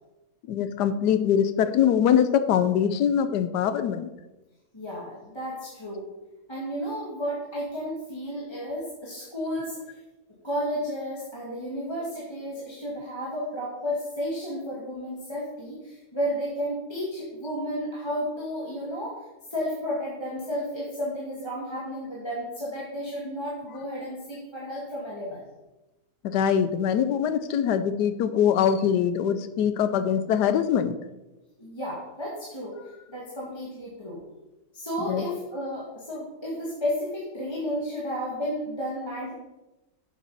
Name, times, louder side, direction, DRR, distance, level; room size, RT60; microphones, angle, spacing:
voice 1, 0.5-4.1 26.2-31.0 35.1-35.2, left 8 dB, 85° left, 12 dB, 1.3 m, -23 dB
voice 2, 4.7-6.1 6.5-10.0 10.4-19.2 19.5-25.4 31.6-32.8 33.1-34.2 34.7-39.3, equal, 15° left, -6 dB, 1.9 m, -32 dB
7.5 x 7.3 x 5.4 m, 1.0 s
omnidirectional pair, 1.7 m